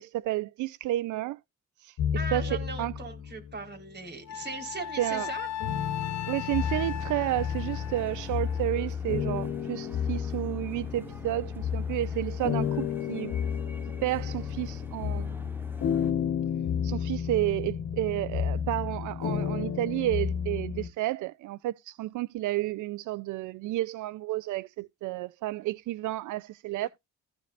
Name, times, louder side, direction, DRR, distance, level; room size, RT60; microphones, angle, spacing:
voice 1, 0.0-1.4 1.8-2.0 2.3-2.9 5.0-5.3 6.3-13.4 14.0-15.5 16.8-26.9, right 15 dB, 80° right, 0.5 m, -31 dB
sound 1, 2.0-3.7 4.3-20.9, left 8 dB, 80° left, 1.2 m, -32 dB
voice 2, 2.1-5.5 26.8-26.9, right 4 dB, 35° right, 4.4 m, -39 dB
Wind instrument woodwind instrument, 4.3-8.6, left 10 dB, 60° left, 1.3 m, -37 dB
sound 2, 6.5-16.1, right 1 dB, 5° right, 1.4 m, -48 dB
15.0 x 5.2 x 2.6 m
cardioid pair, 90°, 30 cm